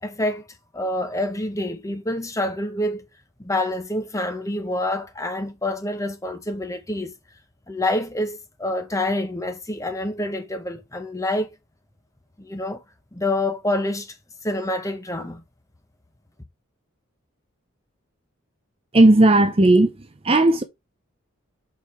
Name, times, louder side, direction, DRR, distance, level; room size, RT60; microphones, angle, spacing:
voice 1, 0.0-0.5 0.7-3.0 3.4-7.1 7.7-11.6 12.4-12.8 13.1-14.2 14.4-15.4, left 1 dB, 15° left, 1.0 m, -27 dB
voice 2, 18.9-19.9 20.2-20.6, right 2 dB, 25° right, 0.7 m, -14 dB
5.3 x 4.6 x 4.9 m
head